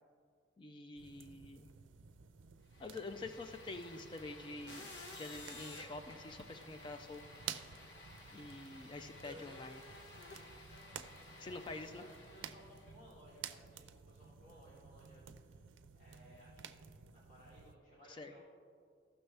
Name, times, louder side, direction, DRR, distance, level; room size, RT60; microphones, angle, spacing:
voice 1, 0.6-1.7 2.8-4.9 5.2-7.2 8.3-9.8 11.4-12.1 18.1-18.3, left 2 dB, 25° left, 8 dB, 0.3 m, -47 dB
sound 1, 1.0-17.8, right 8 dB, 90° right, 0.4 m, -53 dB
sound 2, 2.7-12.9, left 2 dB, 70° left, 1.3 m, -54 dB
voice 2, 11.3-15.6 15.9-16.8 17.1-18.4, equal, 45° left, -8 dB, 2.6 m, -61 dB
14.5 x 6.2 x 3.3 m, 2.2 s
head